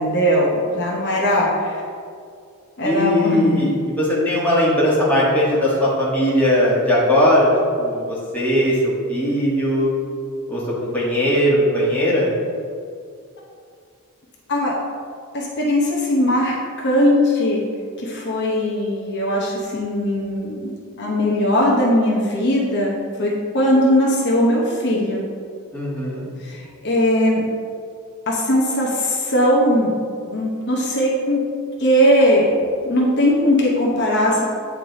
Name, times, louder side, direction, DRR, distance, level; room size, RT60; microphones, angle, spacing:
voice 1, 0.0-1.7 2.8-3.6 14.5-14.7 15.3-17.6 18.0-20.6 21.0-25.2 26.4-27.4 28.3-29.9 30.3-31.4 31.8-32.5 32.8-34.4, equal, 50° left, -3 dB, 0.8 m, -19 dB
voice 2, 2.8-3.7 4.0-7.5 7.8-9.9 10.5-10.6 10.9-12.3 25.7-26.2, equal, 10° left, -8 dB, 1.4 m, -19 dB
8.6 x 3.3 x 4.0 m, 2.3 s
head